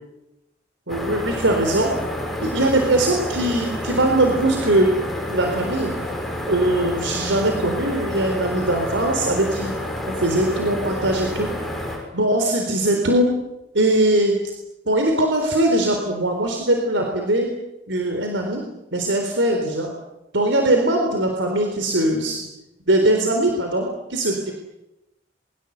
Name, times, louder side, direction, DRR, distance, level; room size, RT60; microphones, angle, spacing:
sound 1, 0.9-12.0, left 1 dB, ahead, 6.5 m, -29 dB
voice 1, 0.9-1.9 2.4-4.9 5.3-5.9 6.5-9.7 10.0-11.5 12.1-13.3 13.7-14.4 14.9-17.5 17.9-18.6 18.9-19.9 20.3-22.5 22.9-24.5, right 1 dB, 80° right, 3 dB, 4.0 m, -21 dB
28.5 x 23.5 x 8.2 m, 0.94 s
head